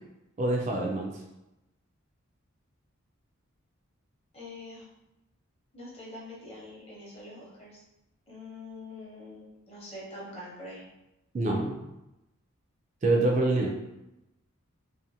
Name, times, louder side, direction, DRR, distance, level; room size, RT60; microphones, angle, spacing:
voice 1, 0.4-1.1 11.3-11.9 13.0-13.7, right 2 dB, 35° right, 0 dB, 0.3 m, -26 dB
voice 2, 4.3-4.8 5.7-7.8 8.3-10.8, left 2 dB, 30° left, -5 dB, 0.8 m, -44 dB
2.5 x 2.5 x 2.7 m, 0.93 s
head